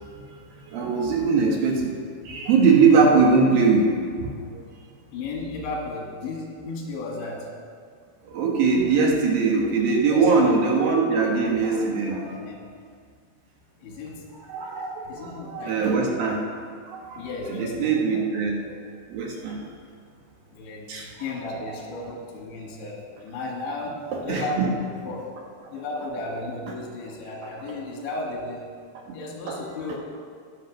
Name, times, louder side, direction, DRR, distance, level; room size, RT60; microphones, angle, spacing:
voice 1, 0.7-1.9 2.3-4.3 4.5-4.6 8.3-12.2 14.5-16.4 16.9-18.7 19.1-19.6 20.9-21.1 24.1-24.7 29.5-29.6, right 4 dB, 65° right, -1 dB, 2.8 m, -21 dB
voice 2, 5.1-7.5 10.1-10.6 11.3-11.4 11.7-12.6 13.8-14.2 15.0-16.2 17.1-18.2 18.6-18.9 20.5-25.3 25.7-28.7 29.0-30.0, left 2 dB, 90° left, 0 dB, 4.2 m, -34 dB
19.0 x 6.6 x 5.2 m, 2.1 s
omnidirectional pair, 5.0 m